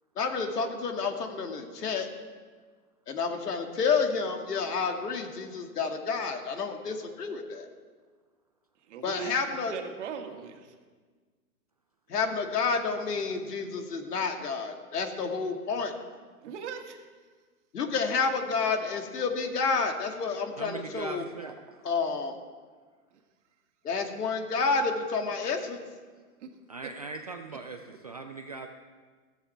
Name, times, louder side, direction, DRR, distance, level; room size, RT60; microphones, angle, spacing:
voice 1, 0.2-2.1 3.1-7.7 9.0-9.7 12.1-15.9 17.7-21.2 21.8-22.3 23.8-25.8, left 5 dB, 80° left, 4 dB, 2.4 m, -29 dB
voice 2, 8.9-10.8 16.4-17.1 26.4-26.5 26.8-26.9 27.5-27.6, right 7 dB, 50° right, 4 dB, 2.0 m, -40 dB
voice 3, 20.6-21.6 26.7-28.7, right 4 dB, 30° right, 4 dB, 0.4 m, -40 dB
16.0 x 14.5 x 4.5 m, 1.5 s
hypercardioid pair, 150°, 46 cm